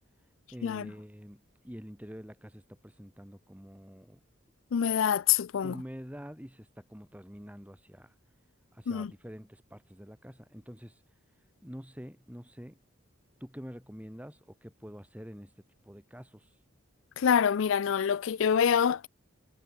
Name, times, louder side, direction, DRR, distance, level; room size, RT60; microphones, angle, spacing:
voice 1, 0.5-4.2 5.6-8.1 8.7-11.0 11.6-12.8 13.4-15.5 15.8-16.6, equal, 5° right, 7.5 m, -46 dB
voice 2, 4.7-5.7 8.9-9.1 17.2-19.1, left 8 dB, 70° left, 0.4 m, -26 dB
head